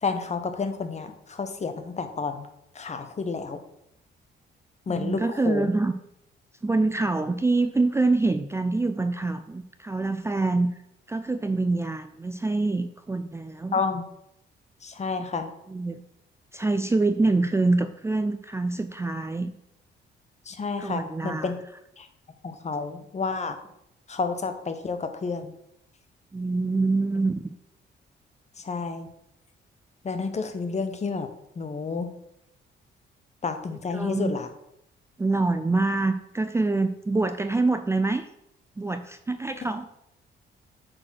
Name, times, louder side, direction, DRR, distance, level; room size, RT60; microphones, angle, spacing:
voice 1, 0.0-2.5 2.7-3.6 4.9-5.7 13.7-14.0 14.8-15.5 20.5-21.6 22.0-22.1 22.4-23.6 24.1-25.5 28.6-29.1 30.0-31.3 31.6-32.1 33.4-34.5, left 4 dB, 35° left, 8 dB, 1.1 m, -30 dB
voice 2, 4.9-5.9 6.6-10.7 11.1-13.8 15.2-15.3 15.7-16.0 16.5-19.5 20.8-21.5 26.3-27.3 33.9-34.3 35.2-38.3 38.8-39.9, right 3 dB, 15° right, 9 dB, 0.4 m, -25 dB
7.5 x 4.3 x 6.4 m, 0.80 s
cardioid pair, 90°, 20 cm